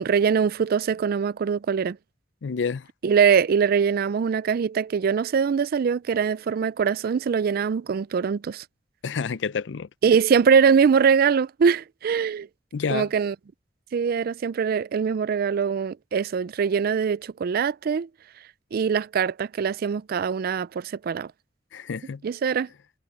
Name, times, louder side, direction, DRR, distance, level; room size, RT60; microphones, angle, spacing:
voice 1, 0.0-2.0 3.0-8.6 10.0-12.5 12.9-13.4 13.9-18.1 18.7-21.3 22.2-22.7, right 6 dB, 55° right, 0.4 m, -22 dB
voice 2, 2.4-2.9 9.0-9.9 12.7-13.1 21.7-22.2, left 5 dB, 75° left, 0.5 m, -28 dB
head